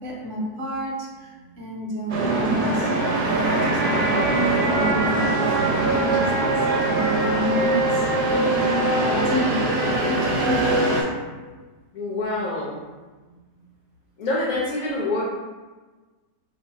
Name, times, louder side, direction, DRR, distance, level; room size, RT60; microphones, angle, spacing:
voice 1, 0.0-10.9, equal, 55° right, -4 dB, 1.0 m, -30 dB
sound 1, 2.1-11.0, right 2 dB, 70° right, 1.3 m, -22 dB
voice 2, 5.8-6.4 11.9-12.8 14.2-15.2, left 2 dB, 65° left, -6 dB, 1.2 m, -27 dB
5.2 x 3.0 x 2.6 m, 1.3 s
omnidirectional pair, 1.8 m